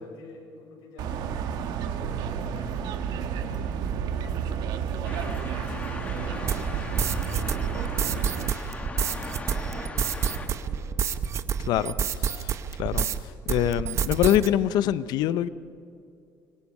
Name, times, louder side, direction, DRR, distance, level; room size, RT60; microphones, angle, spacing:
voice 1, 0.0-1.4 1.8-3.3 3.9-8.4 8.8-11.0, left 2 dB, 85° left, -3 dB, 6.9 m, -48 dB
sound 1, 1.0-8.5, right 8 dB, 65° right, 1.6 m, -31 dB
sound 2, 5.0-10.5, left 2 dB, 20° left, 1.7 m, -38 dB
sound 3, 6.5-13.2 13.5-14.5, right 7 dB, 40° right, 0.9 m, -28 dB
voice 2, 11.7-15.5, left 12 dB, 70° left, 15 dB, 0.7 m, -25 dB
25.5 x 22.5 x 5.4 m, 2.5 s
cardioid pair, 145°, 7 cm